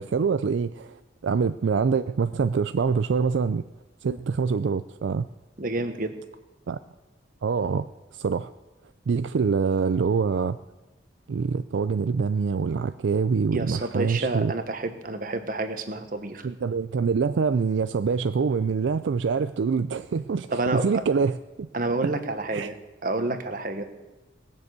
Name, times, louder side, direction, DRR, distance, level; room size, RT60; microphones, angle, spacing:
voice 1, 0.0-3.6 4.0-5.3 6.7-6.8 7.4-7.9 8.1-8.5 9.1-10.6 11.3-14.5 16.4-21.7 22.0-22.1 22.5-22.7, right 5 dB, 75° right, 11 dB, 0.4 m, -25 dB
voice 2, 5.6-6.2 13.5-16.5 20.5-20.8 21.7-22.8 23.0-23.8, right 2 dB, 45° right, 8 dB, 1.2 m, -29 dB
19.0 x 6.9 x 8.1 m, 1.1 s
head